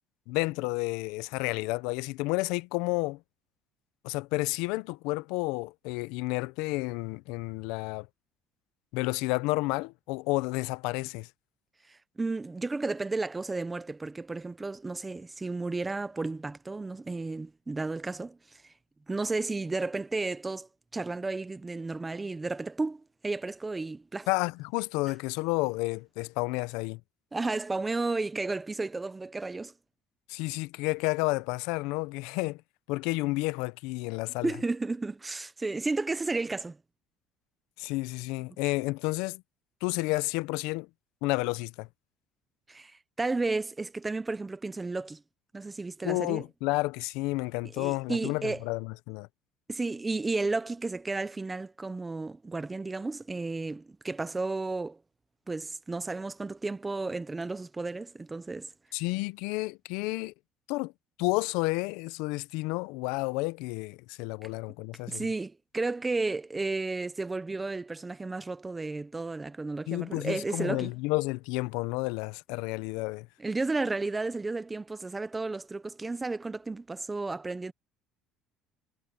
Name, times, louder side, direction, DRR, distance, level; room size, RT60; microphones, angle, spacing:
voice 1, 0.3-3.2 4.0-8.1 8.9-11.3 24.3-27.0 30.3-32.6 32.9-34.5 37.8-39.4 39.8-40.9 41.2-41.9 46.0-49.3 58.9-60.3 60.7-60.9 61.2-65.3 69.9-73.3, left 23 dB, 85° left, 0.5 m, -31 dB
voice 2, 11.9-18.4 19.1-24.3 27.3-29.7 34.4-36.8 42.7-45.2 45.5-46.4 47.7-48.6 49.7-55.0 55.5-58.7 65.1-70.9 73.4-77.7, right 3 dB, 10° right, 0.5 m, -33 dB
cardioid pair, 180°, 0 cm